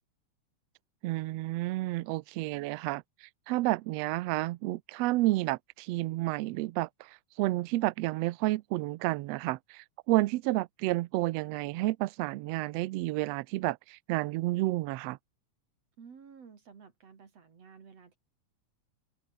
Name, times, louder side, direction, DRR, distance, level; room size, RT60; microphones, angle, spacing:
voice 1, 1.0-7.1 7.4-15.2, right 18 dB, 80° right, 1.6 m, -30 dB
voice 2, 16.0-18.2, right 6 dB, 55° right, 3.7 m, -53 dB
open air
omnidirectional pair, 3.4 m